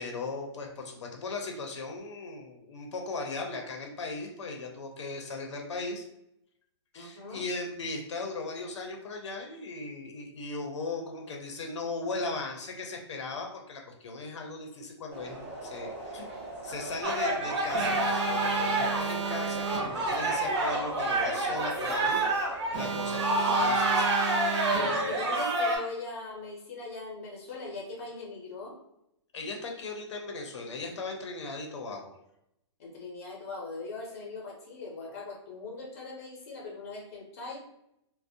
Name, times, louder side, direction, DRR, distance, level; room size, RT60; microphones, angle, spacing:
voice 1, 0.0-6.1 6.9-16.3 16.6-24.1 29.3-32.1, left 3 dB, 75° left, 2 dB, 0.5 m, -38 dB
voice 2, 6.9-7.4 22.7-23.1 24.4-28.7 32.8-37.6, left 3 dB, 30° left, -1 dB, 0.6 m, -40 dB
sound 1, 15.1-24.1, right 1 dB, 20° right, 0.4 m, -42 dB
sound 2, 17.0-25.8, right 2 dB, 70° right, 0.8 m, -28 dB
Alarm, 17.7-20.3 22.7-25.3, right 6 dB, 90° right, 0.4 m, -34 dB
2.5 x 2.0 x 2.6 m, 0.81 s
hypercardioid pair, 175°, 15 cm